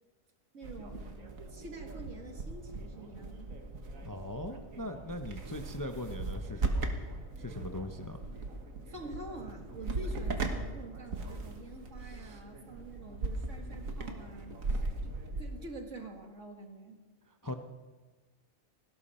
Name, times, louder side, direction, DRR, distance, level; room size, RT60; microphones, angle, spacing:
voice 1, 0.5-1.1 1.5-3.6 8.9-17.0, right 1 dB, 65° right, 2 dB, 2.4 m, -47 dB
sound 1, 0.6-15.7, right 3 dB, 80° right, 1.9 m, -38 dB
voice 2, 4.0-6.9 7.4-8.2 12.0-12.4 17.4-17.5, left 1 dB, 20° left, 5 dB, 0.7 m, -40 dB
18.5 x 16.5 x 4.3 m, 1.3 s
omnidirectional pair, 1.4 m